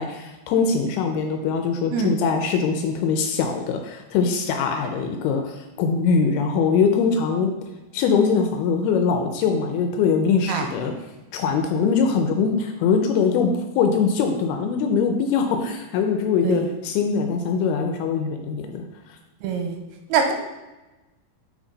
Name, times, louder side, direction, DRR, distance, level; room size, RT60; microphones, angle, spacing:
voice 1, 0.0-7.5 7.9-10.9 11.3-18.8, left 5 dB, 85° left, 5 dB, 2.6 m, -22 dB
voice 2, 19.4-19.8 20.1-20.3, right 6 dB, 80° right, 4 dB, 2.6 m, -23 dB
6.3 x 5.8 x 3.9 m, 1.1 s
omnidirectional pair, 4.5 m